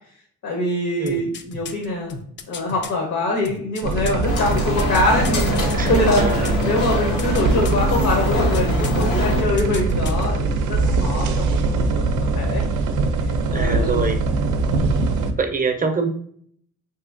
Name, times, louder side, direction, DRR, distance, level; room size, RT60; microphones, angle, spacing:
voice 1, 0.4-2.1 2.5-12.6 13.5-14.1 14.7-15.0, left 2 dB, 65° left, -1 dB, 0.9 m, -24 dB
sound 1, 1.1-2.9 3.4-6.7 6.9-7.8 8.3-9.0 9.3-10.3 10.6-10.7, left 5 dB, 40° left, 0.4 m, -35 dB
sound 2, 3.8-15.3, right 3 dB, 85° right, 0.5 m, -22 dB
sound 3, 4.3-9.4, left 2 dB, 90° left, 1.1 m, -25 dB
voice 2, 5.8-6.5 11.1-11.5 13.5-14.2 15.4-16.1, right 4 dB, 30° right, 6 dB, 0.5 m, -25 dB
3.0 x 2.9 x 2.5 m, 0.62 s
cardioid pair, 90°, 30 cm